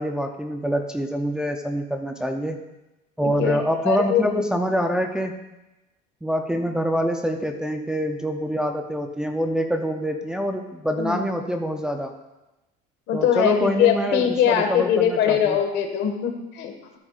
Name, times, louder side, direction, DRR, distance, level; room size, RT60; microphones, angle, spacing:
voice 1, 0.0-2.6 3.2-5.4 6.2-12.1 13.1-15.6, equal, 5° right, 3 dB, 0.5 m, -25 dB
voice 2, 3.2-3.6 3.8-4.2 10.9-11.2 13.1-17.0, left 9 dB, 60° left, 4 dB, 1.6 m, -22 dB
13.0 x 10.0 x 2.5 m, 0.99 s
cardioid pair, 130°, 20 cm